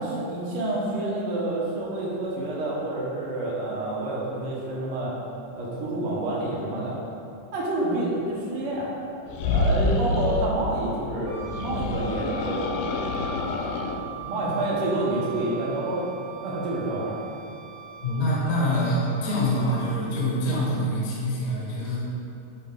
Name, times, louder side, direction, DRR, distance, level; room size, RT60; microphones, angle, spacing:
voice 1, 0.0-5.1 5.5-7.0 7.5-8.9 9.4-12.8 13.4-16.1 16.4-17.2, right 2 dB, 75° right, -5 dB, 1.3 m, -28 dB
sound 1, 9.3-10.5 11.4-14.0, left 3 dB, 85° left, 1.9 m, -27 dB
Wind instrument woodwind instrument, 11.3-19.9, right 5 dB, 90° right, 3.2 m, -41 dB
voice 2, 18.0-22.0, equal, 50° left, -6 dB, 0.9 m, -25 dB
9.7 x 4.4 x 3.7 m, 2.7 s
omnidirectional pair, 4.1 m